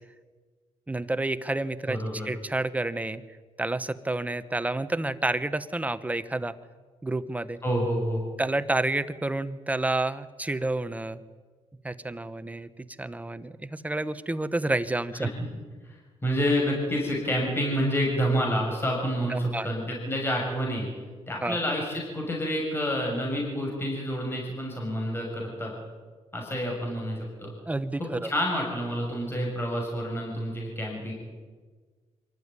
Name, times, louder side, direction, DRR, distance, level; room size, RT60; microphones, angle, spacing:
voice 1, 0.9-2.0 2.2-3.2 3.6-6.6 7.0-7.6 8.4-11.2 11.8-12.7 13.0-15.3 19.3-19.7 21.4-21.6 27.7-28.3, right 2 dB, 10° right, 13 dB, 1.0 m, -29 dB
voice 2, 1.9-2.3 7.6-8.2 15.8-20.9 21.3-25.7 26.3-27.5 28.0-31.1, equal, 20° left, -1 dB, 6.5 m, -28 dB
25.0 x 14.0 x 9.8 m, 1.4 s
cardioid pair, 110°, 12 cm